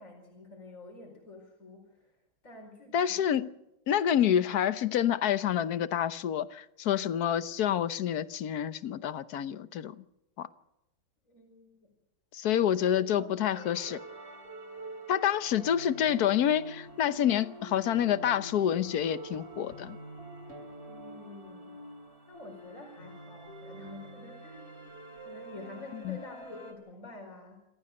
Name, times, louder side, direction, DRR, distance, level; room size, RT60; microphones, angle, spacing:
voice 1, 0.0-2.1 2.4-3.4 11.3-11.9 12.5-12.9 13.2-13.3 20.8-21.7 22.3-25.0 25.2-27.7, left 2 dB, 50° left, 5.2 m, -48 dB
voice 2, 2.9-3.5 3.9-9.9 10.4-10.5 12.3-14.0 15.1-20.0 26.0-26.2, left 10 dB, 70° left, 1.4 m, -28 dB
sound 1, 13.5-26.7, right 1 dB, 40° right, 3.9 m, -46 dB
27.5 x 15.0 x 6.7 m
omnidirectional pair, 1.8 m